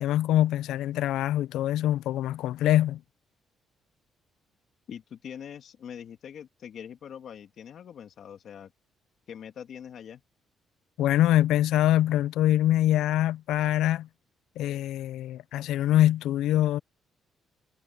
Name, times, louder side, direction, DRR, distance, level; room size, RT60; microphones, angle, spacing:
voice 1, 0.0-3.0 11.0-14.1 14.6-16.8, left 13 dB, 85° left, 0.4 m, -24 dB
voice 2, 4.9-8.7 9.3-10.2, left 8 dB, 65° left, 2.3 m, -43 dB
cardioid pair, 90°, 0 cm